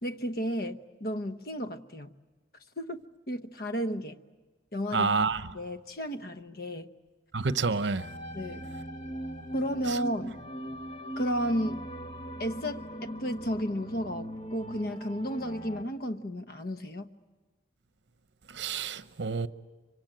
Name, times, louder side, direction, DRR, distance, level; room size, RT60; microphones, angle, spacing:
voice 1, 0.0-2.1 2.8-3.0 3.3-4.2 4.7-5.1 5.5-6.9 8.3-8.7 9.5-10.4 11.2-11.8 12.4-17.1, equal, 55° left, 1.0 m, -33 dB
voice 2, 4.9-5.4 7.3-8.1 9.9-10.0 18.5-19.5, right 4 dB, 75° right, 0.8 m, -28 dB
sound 1, 8.0-15.8, equal, 30° left, 1.3 m, -40 dB
25.5 x 24.0 x 9.0 m
head